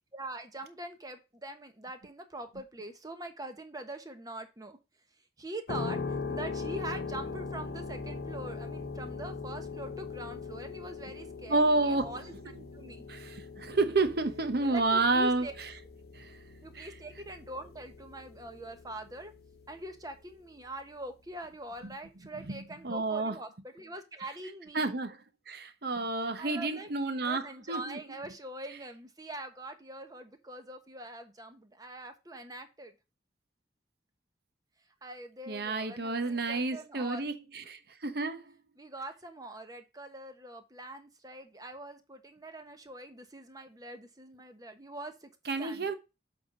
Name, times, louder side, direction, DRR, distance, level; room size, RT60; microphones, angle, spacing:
voice 1, 0.1-4.8 5.4-13.0 14.6-15.5 16.6-19.3 19.7-24.8 26.4-26.9 27.2-32.9 35.0-37.3 38.8-45.3 45.6-45.9, right 1 dB, 20° right, 1.1 m, -43 dB
sound 1, 5.7-20.3, left 4 dB, 60° left, 0.9 m, -41 dB
voice 2, 11.5-12.2 13.1-15.5 16.1-16.4 16.7-16.9 21.8-21.9 22.5-23.4 24.7-28.0 35.5-38.5 45.5-45.9, right 3 dB, 60° right, 1.0 m, -30 dB
7.7 x 3.6 x 5.4 m
head